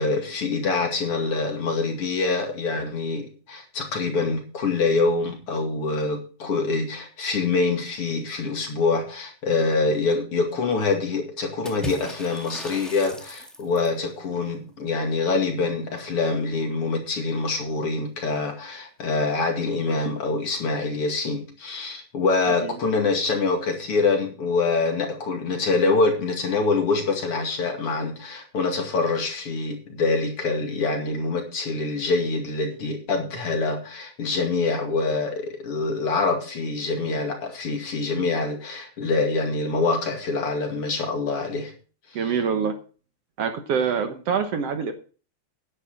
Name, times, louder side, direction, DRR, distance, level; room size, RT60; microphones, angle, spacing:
voice 1, 0.0-41.7 42.1-42.2, left 3 dB, 50° left, 3 dB, 3.0 m, -25 dB
Water / Splash splatter, 11.7-14.0, equal, ahead, 1.1 m, -37 dB
voice 2, 42.2-42.7 43.4-44.9, right 6 dB, 60° right, 7 dB, 2.0 m, -25 dB
10.5 x 9.9 x 4.9 m, 0.38 s
omnidirectional pair, 3.4 m